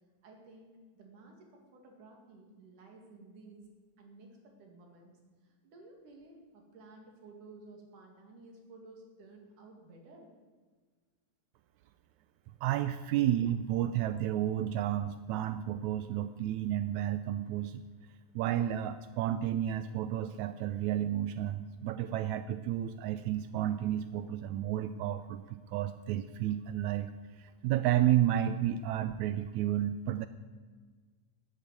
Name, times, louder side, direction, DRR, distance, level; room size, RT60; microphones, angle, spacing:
voice 1, 0.2-3.7 4.0-5.1 5.4-10.3, right 3 dB, 65° right, 2 dB, 3.8 m, -54 dB
voice 2, 12.6-17.8 18.3-30.3, right 12 dB, 90° right, 11 dB, 1.6 m, -31 dB
12.5 x 8.8 x 9.5 m, 1.5 s
omnidirectional pair, 3.9 m